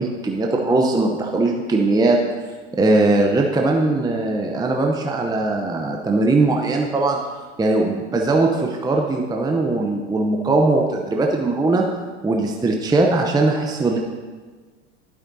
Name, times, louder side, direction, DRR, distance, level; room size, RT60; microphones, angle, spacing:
voice 1, 0.0-2.2 2.8-7.2 7.6-11.8 12.2-14.0, right 2 dB, 10° right, 1 dB, 0.7 m, -20 dB
12.0 x 8.5 x 2.7 m, 1.4 s
hypercardioid pair, 90°, 37 cm